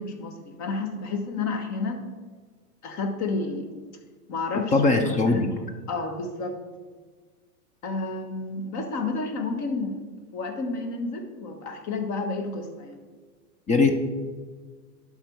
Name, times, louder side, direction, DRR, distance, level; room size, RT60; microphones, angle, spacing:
voice 1, 0.0-2.1 2.8-3.7 4.3-4.7 5.0-5.4 5.9-6.6 7.8-10.0 10.3-13.0, left 3 dB, 35° left, 5 dB, 1.4 m, -30 dB
voice 2, 4.7-5.5 13.7-14.0, left 3 dB, 15° left, 6 dB, 0.5 m, -20 dB
11.5 x 4.5 x 4.6 m, 1.4 s
hypercardioid pair, 105°, 47 cm